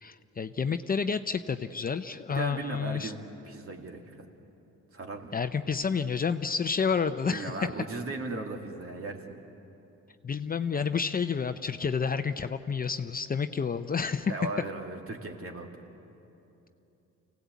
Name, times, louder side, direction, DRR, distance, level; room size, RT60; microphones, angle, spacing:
voice 1, 0.0-3.1 5.3-7.7 10.2-14.3, left 6 dB, 30° left, 10 dB, 0.6 m, -30 dB
voice 2, 2.3-3.2 3.4-4.2 4.9-5.3 7.3-9.4 14.3-15.7, right 3 dB, 45° right, 3 dB, 2.4 m, -37 dB
25.5 x 17.5 x 8.3 m, 2.9 s
cardioid pair, 90°, 30 cm